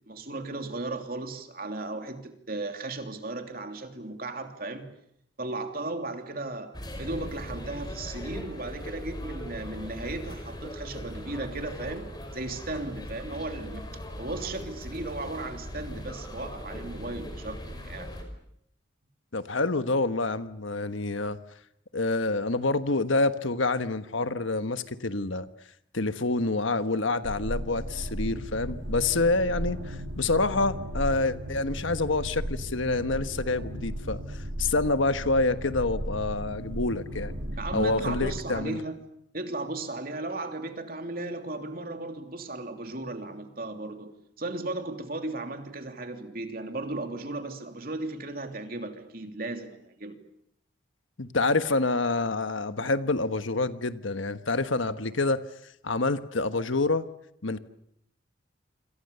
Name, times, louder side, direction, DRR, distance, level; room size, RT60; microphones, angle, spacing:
voice 1, 0.1-4.9 5.4-6.7 7.0-13.9 14.2-18.1 37.6-39.0 39.3-44.1 44.4-50.2, right 2 dB, 45° right, 5 dB, 3.0 m, -36 dB
sound 1, 6.7-18.2, equal, 20° left, 4.9 m, -39 dB
voice 2, 19.3-21.4 21.9-25.5 25.9-34.2 34.6-37.3 37.7-38.8 51.2-55.4 55.8-57.1 57.4-57.6, left 3 dB, 80° left, 10 dB, 1.4 m, -27 dB
sound 2, 27.2-38.6, equal, 85° right, 2.7 m, -35 dB
27.0 x 27.0 x 6.9 m, 0.74 s
head